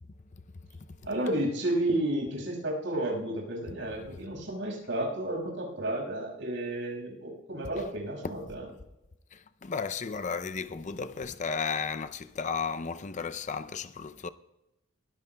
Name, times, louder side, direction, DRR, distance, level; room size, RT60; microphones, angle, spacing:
voice 1, 1.0-8.6, right 1 dB, 65° right, 5.7 m, -32 dB
voice 2, 9.3-14.3, left 5 dB, 35° left, 0.5 m, -34 dB
21.5 x 15.0 x 2.3 m
head